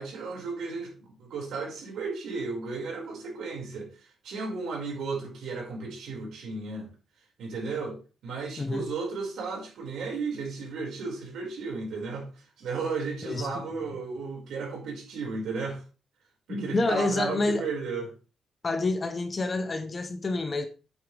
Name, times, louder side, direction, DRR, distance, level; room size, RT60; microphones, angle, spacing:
voice 1, 0.0-6.9 7.4-15.8 16.5-18.1, right 4 dB, 80° right, 5.3 m, -34 dB
voice 2, 13.2-13.7 16.5-17.7 18.6-20.7, left 2 dB, 25° left, 0.8 m, -28 dB
9.2 x 8.9 x 3.4 m
cardioid pair, 155°, 0 cm